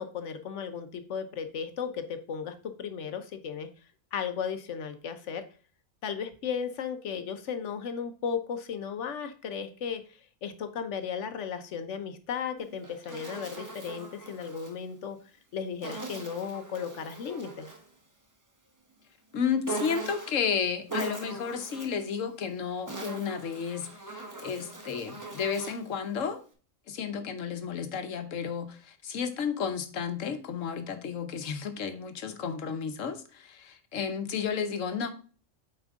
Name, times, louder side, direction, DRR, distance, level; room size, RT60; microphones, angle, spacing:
voice 1, 0.0-3.7 4.1-5.4 6.0-10.0 10.4-15.2 15.5-17.7, left 7 dB, 70° left, 9 dB, 1.1 m, -35 dB
Insect, 12.6-14.8 15.8-17.9 19.6-20.5 20.9-22.0 22.7-25.9, right 3 dB, 15° right, 1.2 m, -40 dB
voice 2, 19.3-23.9 24.1-26.4 26.9-35.1, left 6 dB, 90° left, 9 dB, 1.3 m, -32 dB
8.6 x 4.5 x 3.6 m, 0.39 s
omnidirectional pair, 1.3 m